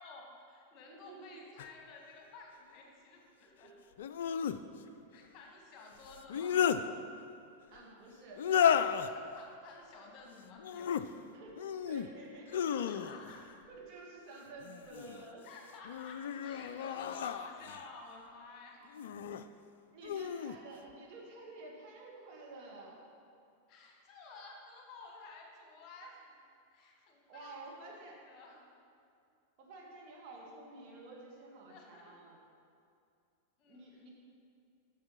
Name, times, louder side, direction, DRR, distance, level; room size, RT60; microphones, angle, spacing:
voice 1, 0.0-3.7 5.1-6.8 9.0-11.3 12.7-13.4 15.4-19.0 20.4-20.5 23.7-26.4 26.7-28.0 28.2-28.7 31.7-32.1 33.6-33.8, left 3 dB, 35° left, 0 dB, 1.6 m, -53 dB
voice 2, 0.8-1.6 3.6-3.7 7.7-8.6 11.2-12.6 13.5-15.4 19.9-23.0 27.3-28.2 29.6-32.4 33.7-34.1, right 2 dB, 40° right, -3 dB, 1.9 m, -51 dB
sound 1, 1.6-1.7 4.0-4.6 6.1-6.8 8.4-9.1 10.6-11.1 11.6-12.1 12.5-13.4 14.6-15.2 15.8-17.9 18.9-19.4 20.0-20.6, left 8 dB, 60° left, 0.3 m, -33 dB
8.6 x 6.7 x 5.7 m, 2.4 s
figure-of-eight pair, 90°, 0 cm